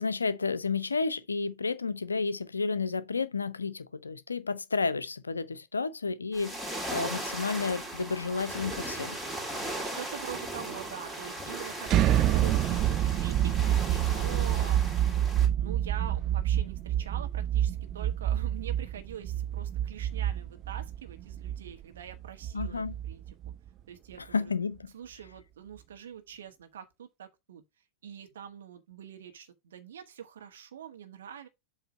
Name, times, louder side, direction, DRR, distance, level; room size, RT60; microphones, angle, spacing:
voice 1, 0.0-9.2 22.5-23.0 24.3-24.9, left 4 dB, 75° left, 0.6 m, -31 dB
sound 1, 6.3-15.5, right 1 dB, 5° right, 2.9 m, -37 dB
voice 2, 10.0-11.9 12.2-14.8 15.6-23.2 23.9-24.5 24.9-27.6 28.0-31.5, right 9 dB, 65° right, 1.6 m, -44 dB
sound 2, 11.9-23.7, right 11 dB, 35° right, 0.3 m, -28 dB
7.9 x 3.2 x 5.2 m
figure-of-eight pair, 90°, 0 cm